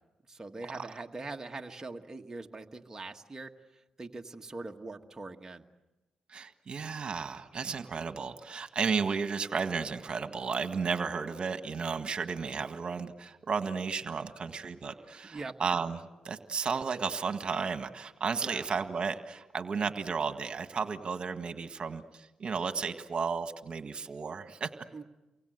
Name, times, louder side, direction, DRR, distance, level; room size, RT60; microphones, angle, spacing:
voice 1, 0.3-3.5 4.0-5.6 15.0-15.5 18.4-18.7 24.9-25.0, right 3 dB, 25° right, 3 dB, 1.6 m, -42 dB
voice 2, 6.3-24.8, right 5 dB, 55° right, 8 dB, 1.7 m, -33 dB
30.0 x 23.5 x 8.0 m, 1.1 s
cardioid pair, 65°, 2 cm